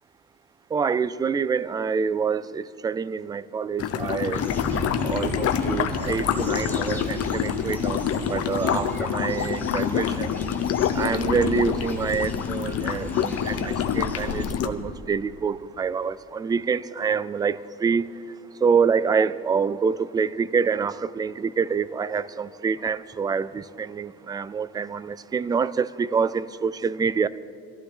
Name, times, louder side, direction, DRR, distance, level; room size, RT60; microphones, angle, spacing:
voice 1, 0.7-4.4 5.0-10.3 11.0-18.1 18.6-27.3, right 6 dB, 15° right, 0.3 m, -26 dB
sound 1, 3.8-14.7, left 8 dB, 50° left, 1.2 m, -26 dB
sound 2, 4.3-14.5, left 1 dB, 5° left, 2.6 m, -35 dB
25.0 x 14.5 x 3.7 m
cardioid pair, 115°, 32 cm